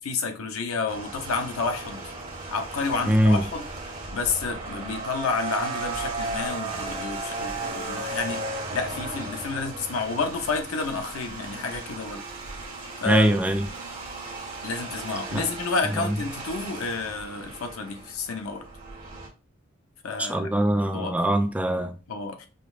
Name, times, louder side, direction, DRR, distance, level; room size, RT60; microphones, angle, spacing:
voice 1, 0.0-2.1 2.5-3.7 4.1-8.4 8.7-12.2 13.0-13.3 14.6-18.7 20.0-20.5 20.9-21.2 22.1-22.5, left 4 dB, 90° left, 0.6 m, -30 dB
sound 1, 0.9-19.3, right 3 dB, 45° right, 1.2 m, -36 dB
voice 2, 3.1-3.4 13.1-13.6 15.3-15.4 20.2-21.9, right 1 dB, 5° right, 0.3 m, -22 dB
5.0 x 2.0 x 2.4 m
head